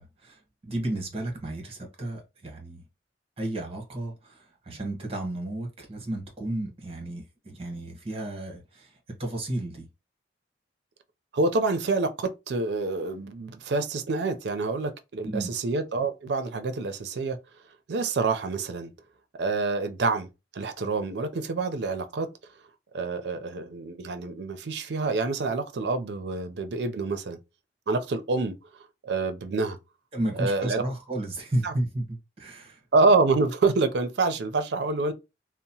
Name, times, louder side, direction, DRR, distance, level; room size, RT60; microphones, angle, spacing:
voice 1, 0.0-2.8 3.4-8.9 9.2-9.9 15.2-15.5 30.1-32.8, right 1 dB, 30° right, 0.9 m, -33 dB
voice 2, 11.3-17.4 17.9-18.9 19.4-20.3 20.5-22.3 22.9-27.4 27.9-28.6 29.0-29.8 30.3-30.8 31.6-31.7 32.9-35.1, right 3 dB, 65° right, 0.5 m, -27 dB
2.8 x 2.0 x 2.7 m
head